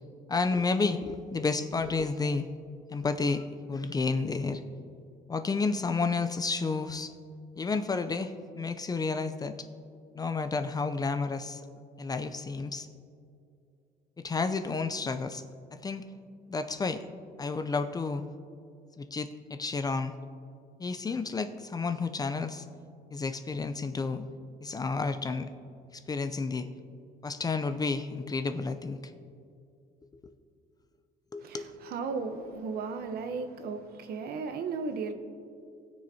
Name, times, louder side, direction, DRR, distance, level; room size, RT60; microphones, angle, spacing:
voice 1, 0.3-2.5 2.9-4.6 5.3-7.1 7.6-9.7 10.1-11.6 12.0-12.9 14.2-15.4 15.8-16.0 16.5-17.0 17.4-18.2 19.0-20.1 20.8-22.6 23.1-24.2 24.6-25.5 25.9-26.7 27.2-29.0 31.3-31.7, left 4 dB, 20° left, 9 dB, 0.5 m, -31 dB
voice 2, 31.4-35.1, right 4 dB, 65° right, 7 dB, 0.9 m, -35 dB
20.0 x 6.6 x 2.8 m, 2.5 s
cardioid pair, 110°, 17 cm